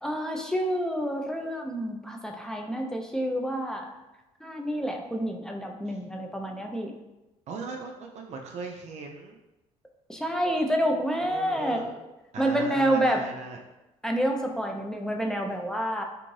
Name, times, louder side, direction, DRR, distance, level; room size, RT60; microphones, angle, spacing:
voice 1, 0.0-3.9 4.4-6.9 10.1-11.8 12.4-13.3 14.0-16.0, equal, 5° left, 2 dB, 0.4 m, -28 dB
voice 2, 7.5-9.3 11.2-11.9 12.3-13.6, right 4 dB, 55° right, 1 dB, 0.4 m, -38 dB
2.6 x 2.5 x 3.1 m, 1.0 s
supercardioid pair, 70°, 13 cm